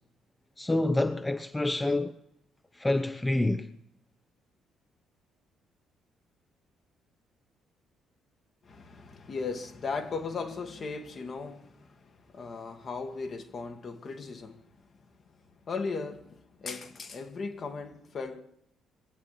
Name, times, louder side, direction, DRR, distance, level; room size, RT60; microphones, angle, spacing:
voice 1, 0.6-2.1 2.8-3.7, left 2 dB, 15° left, 0.7 m, -27 dB
voice 2, 8.6-14.8 15.7-18.4, left 4 dB, 50° left, 1.7 m, -37 dB
21.5 x 8.6 x 6.6 m
hypercardioid pair, 45°, 0 cm